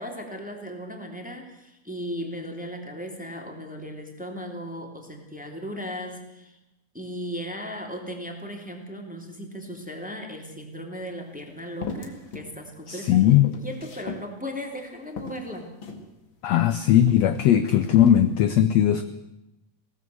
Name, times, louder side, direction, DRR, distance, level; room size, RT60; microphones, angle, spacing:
voice 1, 0.0-6.5 6.9-15.7, equal, 5° right, 2 dB, 2.5 m, -36 dB
sound 1, 11.0-11.1 11.8-12.5 12.9-14.3 14.7-14.8 15.2-16.1 16.8-17.5 17.8-18.2, left 5 dB, 40° left, 2.4 m, -38 dB
voice 2, 12.9-13.5 16.4-19.0, left 11 dB, 75° left, 11 dB, 1.6 m, -19 dB
21.0 x 17.0 x 7.8 m, 0.91 s
omnidirectional pair, 4.0 m